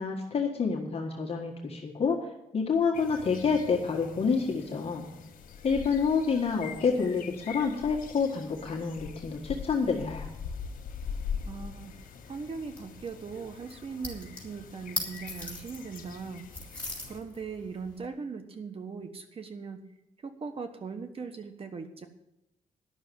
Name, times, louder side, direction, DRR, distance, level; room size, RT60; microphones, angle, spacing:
voice 1, 0.0-2.2 2.5-5.1 5.6-10.3, left 5 dB, 45° left, 0 dB, 1.6 m, -28 dB
sound 1, 2.9-17.2, left 6 dB, 85° left, 1.5 m, -43 dB
sound 2, 10.8-18.1, left 2 dB, 10° left, 3.8 m, -42 dB
voice 2, 11.5-11.9 12.3-16.5 17.1-19.8 20.2-22.1, right 5 dB, 45° right, 7 dB, 1.2 m, -39 dB
11.0 x 6.6 x 9.2 m, 0.86 s
cardioid pair, 110°, 14 cm